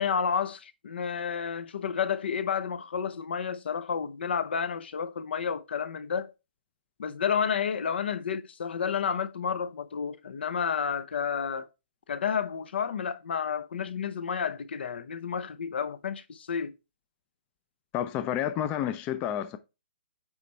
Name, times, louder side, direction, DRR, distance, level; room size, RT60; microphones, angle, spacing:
voice 1, 0.0-6.3 7.0-11.7 12.1-16.7, left 7 dB, 70° left, 0.8 m, -31 dB
voice 2, 17.9-19.6, left 10 dB, 20° left, 0.4 m, -30 dB
9.1 x 3.2 x 4.4 m
hypercardioid pair, 155°, 6 cm